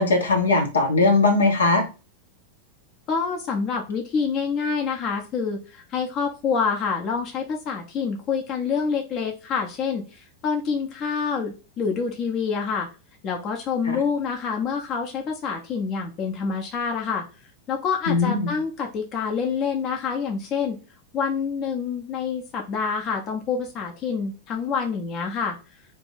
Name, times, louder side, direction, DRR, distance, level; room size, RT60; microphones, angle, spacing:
voice 1, 0.0-1.9 13.9-14.0 18.1-18.5, left 3 dB, 70° left, 3 dB, 0.8 m, -20 dB
voice 2, 3.1-12.9 13.2-17.2 17.7-20.8 21.1-25.6, left 5 dB, 35° left, 2 dB, 0.7 m, -27 dB
2.7 x 2.5 x 3.9 m, 0.33 s
figure-of-eight pair, 90°, 0 cm